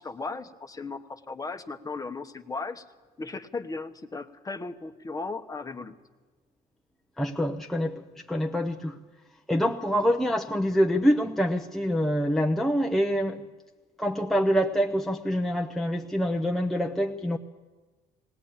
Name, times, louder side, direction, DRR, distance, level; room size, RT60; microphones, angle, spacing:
voice 1, 0.0-2.8 3.2-5.9, left 3 dB, 20° left, 9 dB, 1.0 m, -36 dB
voice 2, 7.2-8.0 8.3-9.0 9.5-13.4 14.0-17.4, equal, ahead, 3 dB, 0.7 m, -25 dB
19.0 x 18.5 x 8.8 m, 1.3 s
cardioid pair, 110°, 17 cm